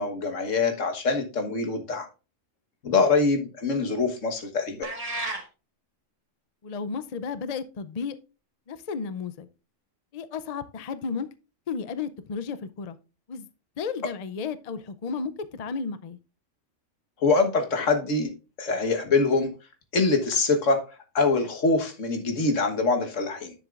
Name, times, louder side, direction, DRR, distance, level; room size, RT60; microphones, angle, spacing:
voice 1, 0.0-2.1 2.8-4.9 17.2-18.3 18.6-19.5 19.9-20.8 21.2-23.5, left 3 dB, 80° left, 1.7 m, -24 dB
sound 1, 4.8-5.5, right 2 dB, 30° right, 1.6 m, -32 dB
voice 2, 6.6-8.2 8.7-9.5 10.1-11.3 11.7-13.0 13.3-13.5 13.8-16.2, left 5 dB, 45° left, 0.5 m, -33 dB
10.0 x 7.2 x 2.5 m
omnidirectional pair, 1.3 m